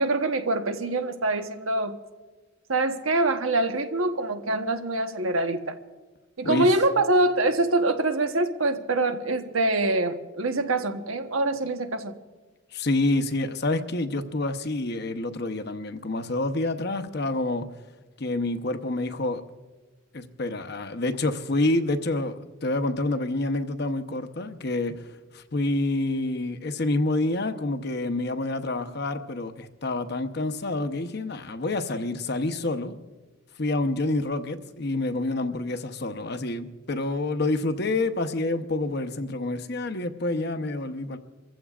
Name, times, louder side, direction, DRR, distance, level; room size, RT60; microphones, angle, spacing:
voice 1, 0.0-2.0 2.7-5.8 6.4-12.1, right 2 dB, 80° right, 1.2 m, -25 dB
voice 2, 12.7-17.7 18.2-19.4 20.1-33.0 33.6-41.2, left 2 dB, 50° left, 0.9 m, -28 dB
28.5 x 15.5 x 2.5 m
head